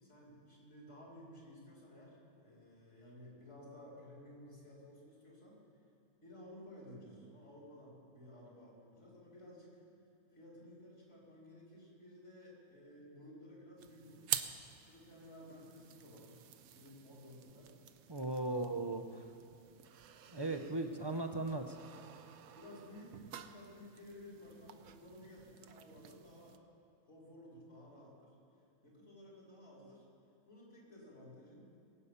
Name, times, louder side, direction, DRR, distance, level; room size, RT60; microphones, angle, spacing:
voice 1, 0.0-5.6 6.2-9.8 10.3-14.3 14.8-16.4 16.7-17.7 18.4-18.8 20.7-20.9 22.5-26.6 27.1-28.4 28.8-30.1 30.4-31.6, left 1 dB, 55° left, -4 dB, 4.7 m, -55 dB
sound 1, 13.8-26.6, right 9 dB, 80° right, 1.2 m, -48 dB
voice 2, 18.1-19.2 20.3-21.8, right 2 dB, 25° right, 5 dB, 0.5 m, -37 dB
21.5 x 8.7 x 6.9 m, 2.4 s
omnidirectional pair, 1.5 m